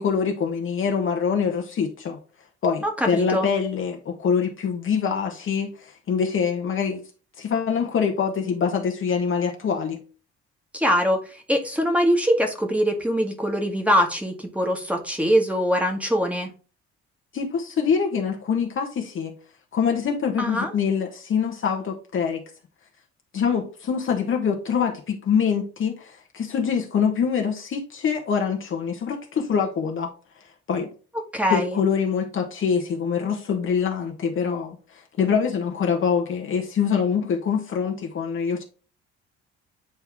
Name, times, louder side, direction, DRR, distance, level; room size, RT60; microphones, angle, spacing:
voice 1, 0.0-2.2 2.6-7.0 7.4-10.0 17.3-19.3 19.7-22.4 23.3-30.1 30.7-30.9 31.5-38.6, left 6 dB, 35° left, 1.1 m, -24 dB
voice 2, 3.0-3.5 10.7-16.5 20.4-20.7 31.3-31.8, equal, 5° right, 1.5 m, -23 dB
8.7 x 3.5 x 3.6 m
figure-of-eight pair, 50°, 34 cm